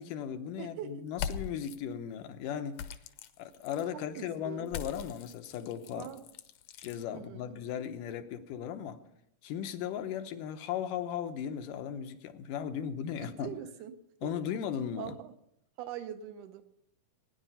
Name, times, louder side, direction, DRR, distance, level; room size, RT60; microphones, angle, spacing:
voice 1, 0.0-2.8 3.4-6.1 6.8-9.0 9.4-13.5 14.2-15.1, left 9 dB, 90° left, 2.6 m, -37 dB
voice 2, 0.6-1.0 3.9-4.7 5.8-6.2 7.1-7.6 13.2-14.4 15.0-15.3 15.8-16.6, right 9 dB, 75° right, 2.3 m, -43 dB
sound 1, 1.1-1.8 2.7-3.9 4.7-7.0, left 8 dB, 70° left, 1.7 m, -41 dB
18.0 x 10.0 x 5.6 m
omnidirectional pair, 3.7 m